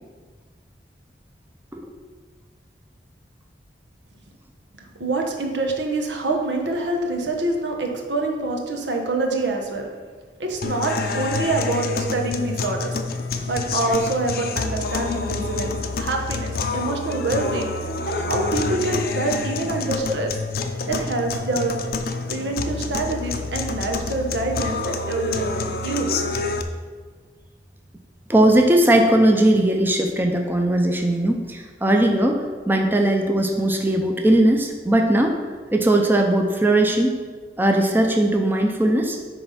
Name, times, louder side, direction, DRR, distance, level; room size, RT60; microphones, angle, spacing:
voice 1, 4.9-9.9 10.4-13.0 13.4-17.7 18.1-20.3 20.9-21.8 22.3-26.2, right 2 dB, 90° right, 2 dB, 1.1 m, -26 dB
sound 1, 10.6-26.6, left 3 dB, 55° left, 0.6 m, -27 dB
voice 2, 28.3-35.4 35.7-37.2 37.6-39.2, right 1 dB, 10° right, 3 dB, 0.6 m, -19 dB
9.4 x 3.4 x 5.7 m, 1.5 s
head